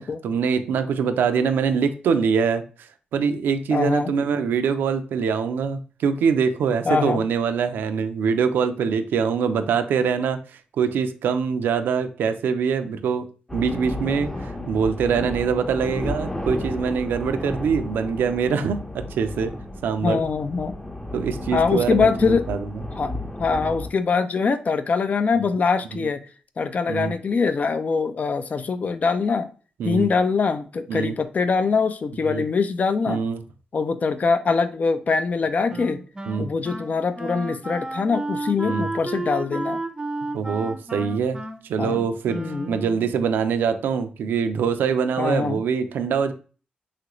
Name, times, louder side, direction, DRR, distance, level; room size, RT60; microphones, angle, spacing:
voice 1, 0.2-10.4 10.8-13.2 13.5-19.5 19.8-20.2 21.1-22.7 26.0-26.1 26.9-27.2 29.8-30.1 30.9-31.2 32.3-32.4 33.1-33.4 36.3-36.5 38.6-38.9 40.3-41.4 41.6-46.3, right 6 dB, 85° right, 8 dB, 0.4 m, -24 dB
voice 2, 3.7-4.1 6.9-7.2 20.0-20.7 21.5-22.4 23.0-23.1 23.4-26.2 26.6-29.5 29.8-33.2 33.7-36.0 36.4-39.8 41.8-42.0 42.3-42.7 45.2-45.6, left 5 dB, 50° left, 11 dB, 0.4 m, -23 dB
sound 1, 13.5-23.9, left 1 dB, 15° left, 0.7 m, -33 dB
Wind instrument woodwind instrument, 35.7-43.1, right 2 dB, 20° right, 0.5 m, -32 dB
3.1 x 2.4 x 3.0 m, 0.38 s
supercardioid pair, 55°, 3 cm